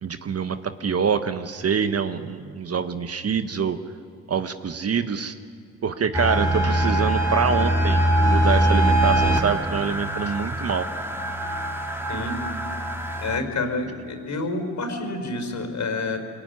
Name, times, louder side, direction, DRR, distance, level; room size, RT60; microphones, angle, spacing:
voice 1, 0.0-3.8 4.3-5.3 5.8-10.9, right 6 dB, 40° right, 10 dB, 1.3 m, -25 dB
sound 1, 6.1-13.4, right 1 dB, 5° right, 2.8 m, -23 dB
voice 2, 12.1-12.4 13.2-16.2, left 2 dB, 45° left, 7 dB, 4.9 m, -28 dB
22.5 x 19.5 x 9.8 m, 2.3 s
supercardioid pair, 65°, 39 cm